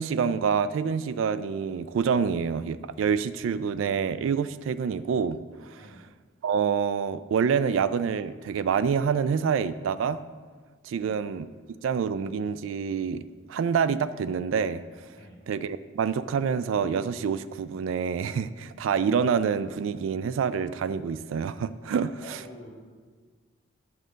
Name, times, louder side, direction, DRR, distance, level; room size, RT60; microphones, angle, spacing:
voice 1, 0.0-5.4 5.7-5.8 6.4-10.2 10.8-11.5 11.8-13.2 13.5-14.8 15.5-22.1, right 6 dB, 70° right, 14 dB, 0.3 m, -27 dB
voice 2, 5.7-6.1 10.9-11.2 15.1-15.4 22.2-22.7, left 1 dB, 45° left, -5 dB, 2.5 m, -47 dB
8.7 x 3.9 x 6.3 m, 1.5 s
head